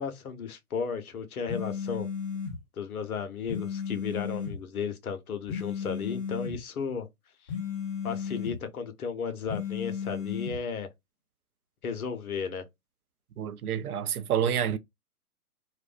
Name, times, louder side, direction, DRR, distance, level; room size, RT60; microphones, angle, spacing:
voice 1, 0.0-2.1 2.8-7.1 8.0-10.9 11.8-12.6, left 6 dB, 65° left, 0.8 m, -34 dB
sound 1, 1.5-2.6 3.5-4.6 5.5-6.6 7.5-8.6 9.5-10.6, left 6 dB, 20° left, 0.6 m, -34 dB
voice 2, 13.4-14.8, right 9 dB, 70° right, 0.5 m, -28 dB
2.5 x 2.1 x 2.4 m
hypercardioid pair, 140°, 46 cm